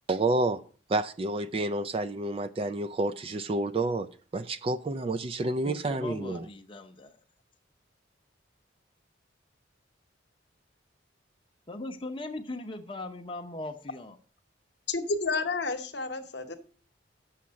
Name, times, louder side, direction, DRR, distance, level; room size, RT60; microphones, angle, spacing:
voice 1, 0.1-0.6 0.9-4.1 4.3-6.5, right 2 dB, 30° right, 0.3 m, -29 dB
voice 2, 5.6-7.2 11.7-14.2, left 2 dB, 25° left, 0.7 m, -39 dB
voice 3, 14.9-16.6, left 3 dB, 60° left, 1.0 m, -30 dB
7.2 x 5.8 x 6.2 m
head